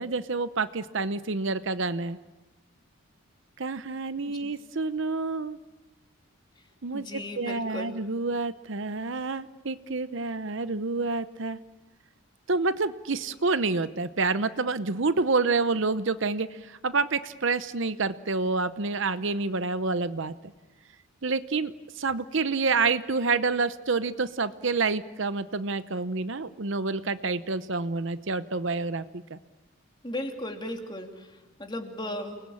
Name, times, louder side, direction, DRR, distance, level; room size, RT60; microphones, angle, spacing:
voice 1, 0.0-2.2 3.6-5.6 6.8-7.0 7.4-11.6 12.5-20.3 21.2-29.0 29.3-29.4, right 3 dB, 60° right, 12 dB, 0.8 m, -28 dB
voice 2, 6.9-7.9 30.0-32.4, left 1 dB, 20° left, 3 dB, 2.8 m, -36 dB
29.5 x 20.5 x 8.6 m, 1.2 s
head